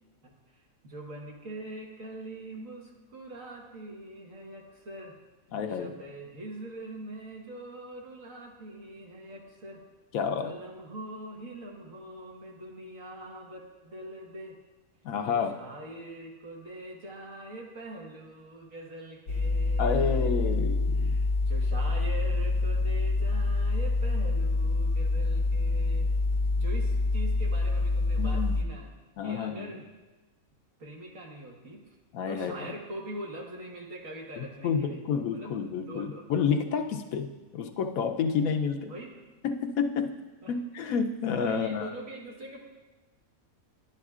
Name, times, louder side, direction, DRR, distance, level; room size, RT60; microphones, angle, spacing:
voice 1, 0.8-5.1 5.7-9.8 10.4-14.6 15.3-20.6 20.9-26.1 26.5-28.9 29.2-29.8 30.8-32.0 32.3-35.5 35.8-36.2 38.8-39.1 40.4-40.5 41.4-42.6, right 1 dB, 70° right, -1 dB, 1.7 m, -43 dB
voice 2, 5.5-5.9 10.1-10.5 15.0-15.6 19.8-21.2 28.2-28.6 29.2-29.7 32.1-32.5 34.4-38.9 39.4-40.1 40.5-41.9, left 6 dB, 85° left, 6 dB, 1.1 m, -29 dB
sound 1, 19.3-28.6, left 3 dB, 65° left, 1.0 m, -26 dB
11.0 x 8.9 x 2.4 m, 1.2 s
omnidirectional pair, 1.4 m